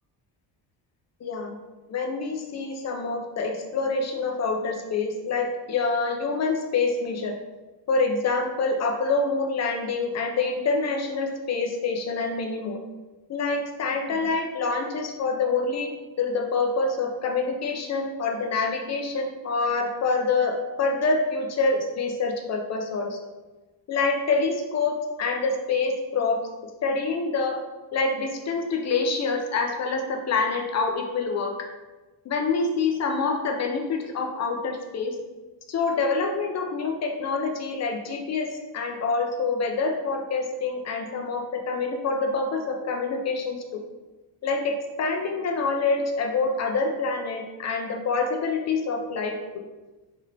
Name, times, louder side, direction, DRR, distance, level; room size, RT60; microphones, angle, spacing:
voice 1, 1.2-1.6 1.9-7.3 7.9-12.8 13.3-23.2 23.9-26.4 26.8-27.6 27.9-31.5 32.3-35.2 35.7-43.8 44.4-49.4, left 4 dB, 40° left, 3 dB, 0.5 m, -26 dB
3.7 x 3.3 x 3.3 m, 1.2 s
cardioid pair, 165°, 45 cm